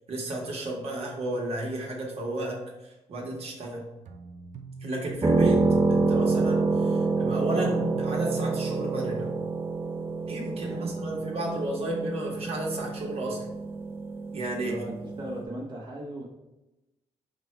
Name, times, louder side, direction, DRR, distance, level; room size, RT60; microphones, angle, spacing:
voice 1, 0.1-3.8 4.8-9.3 10.3-13.5 14.3-14.7, right 1 dB, 60° right, -1 dB, 1.1 m, -32 dB
sound 1, 4.0-9.4, right 4 dB, 85° right, 0.4 m, -42 dB
sound 2, 5.2-15.4, right 3 dB, 20° right, 0.3 m, -27 dB
voice 2, 10.6-11.0 14.5-16.2, right 1 dB, 40° right, -5 dB, 0.9 m, -38 dB
5.2 x 2.2 x 4.4 m, 0.97 s
cardioid pair, 125°, 12 cm